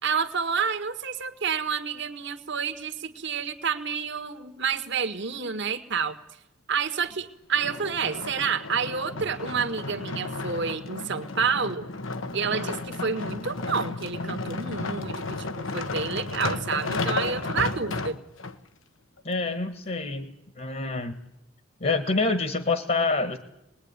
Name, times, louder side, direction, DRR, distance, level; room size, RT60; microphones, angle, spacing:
voice 1, 0.0-6.2 6.7-11.9 12.3-18.1, right 6 dB, 65° right, 7 dB, 1.7 m, -29 dB
sound 1, 7.6-18.6 19.2-19.3, left 3 dB, 85° left, 1.4 m, -33 dB
voice 2, 19.2-21.1 21.8-23.4, left 3 dB, 45° left, 10 dB, 1.7 m, -27 dB
26.0 x 20.5 x 9.8 m, 0.88 s
head